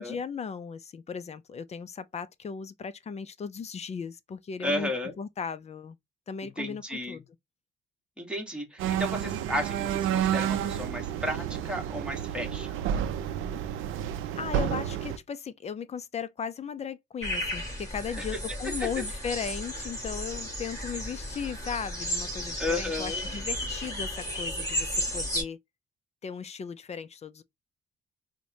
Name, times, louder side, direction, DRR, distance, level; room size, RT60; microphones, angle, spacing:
voice 1, 0.0-4.9 5.2-6.0 6.3-7.2 14.4-25.6 26.2-27.4, left 6 dB, 35° left, 0.4 m, -37 dB
voice 2, 4.6-5.1 6.6-7.2 8.2-12.8 18.8-19.0 22.6-23.3, left 1 dB, 5° right, 1.3 m, -33 dB
sound 1, 8.8-15.2, right 9 dB, 85° right, 0.5 m, -30 dB
sound 2, 17.2-25.4, equal, 15° left, 1.9 m, -33 dB
4.6 x 2.2 x 2.7 m
cardioid pair, 90°, 20 cm